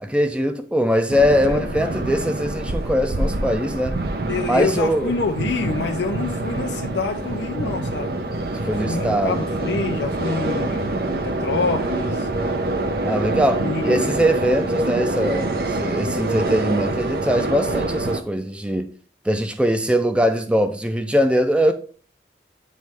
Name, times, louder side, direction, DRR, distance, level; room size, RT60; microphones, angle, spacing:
voice 1, 0.0-4.0 4.4-5.1 8.7-9.4 13.0-18.9 19.2-21.7, equal, 5° right, 0.5 m, -21 dB
sound 1, 1.1-18.2, right 2 dB, 55° right, 0.7 m, -26 dB
voice 2, 4.3-8.1 8.6-10.9 11.2-12.3 13.6-14.1, left 4 dB, 80° left, 0.6 m, -27 dB
9.2 x 3.1 x 3.5 m
head